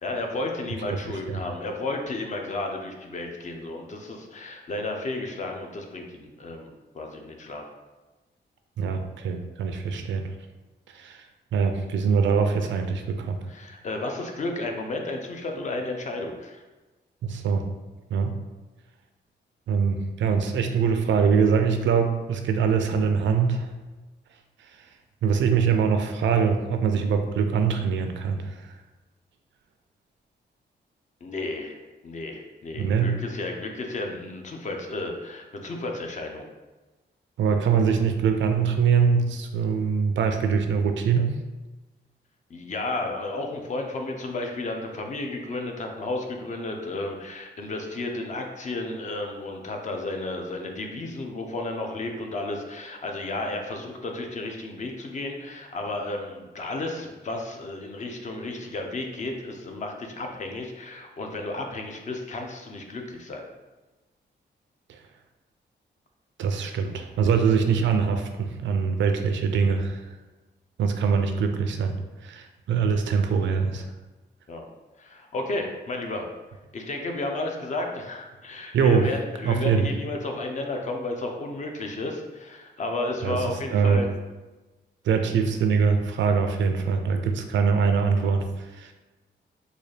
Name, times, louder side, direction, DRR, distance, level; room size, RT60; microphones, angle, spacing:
voice 1, 0.0-7.7 13.5-16.6 31.2-36.4 42.5-63.5 74.5-74.7 75.0-76.3 76.7-84.1, left 2 dB, 40° left, 3 dB, 0.5 m, -33 dB
voice 2, 0.9-1.4 8.8-10.3 10.9-11.2 11.5-13.4 17.2-17.6 18.1-18.4 19.7-23.7 25.2-28.7 32.7-33.2 37.4-41.4 64.9-65.0 66.4-70.0 70.8-72.0 72.2-73.9 78.7-79.1 79.4-79.9 83.2-83.4 83.7-84.0 85.0-88.9, right 6 dB, 90° right, 6 dB, 0.4 m, -23 dB
3.9 x 2.3 x 3.2 m, 1.2 s
wide cardioid pair, 165°, 19 cm